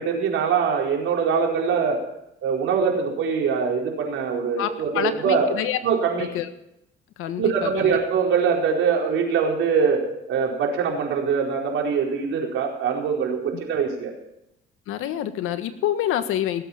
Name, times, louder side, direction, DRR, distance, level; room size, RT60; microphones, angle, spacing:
voice 1, 0.0-2.0 2.4-5.5 5.8-6.3 7.4-10.0 10.3-14.1, right 6 dB, 70° right, 0 dB, 4.7 m, -23 dB
voice 2, 4.6-5.8 6.2-6.5 7.2-8.0 14.9-16.7, left 11 dB, 75° left, 9 dB, 1.6 m, -27 dB
19.0 x 8.3 x 7.4 m, 0.82 s
supercardioid pair, 85°, 21 cm